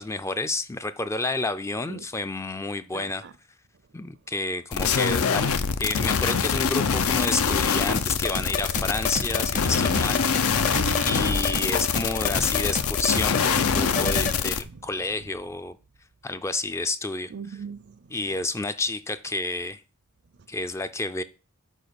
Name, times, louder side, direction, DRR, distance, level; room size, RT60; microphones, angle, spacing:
voice 1, 0.0-3.2 3.9-10.5 11.0-15.8 16.2-17.3 18.1-19.8 20.5-21.2, left 2 dB, 15° left, 0.3 m, -30 dB
voice 2, 2.9-3.3 9.5-11.2 14.7-14.8 17.3-18.1, right 5 dB, 50° right, 0.4 m, -41 dB
sound 1, 4.7-14.6, left 6 dB, 80° left, 0.6 m, -24 dB
sound 2, 8.0-14.4, left 3 dB, 35° left, 0.8 m, -31 dB
6.4 x 5.0 x 6.9 m
head